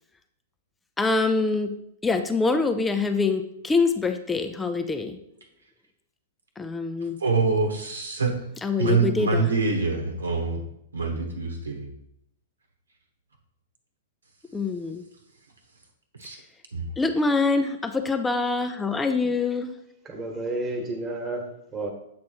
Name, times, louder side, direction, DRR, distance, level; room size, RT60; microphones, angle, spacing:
voice 1, 1.0-1.7 2.0-5.2 6.6-7.2 8.6-9.5 14.5-15.1 16.3-16.5 17.0-19.8, left 3 dB, 10° left, 0.4 m, -25 dB
voice 2, 7.2-8.3 8.8-10.6 10.9-11.9 16.2-16.4 16.7-16.8, right 4 dB, 85° right, 1.0 m, -25 dB
voice 3, 20.1-21.9, right 2 dB, 20° right, 1.4 m, -31 dB
7.6 x 3.1 x 4.4 m
hypercardioid pair, 110°, 0 cm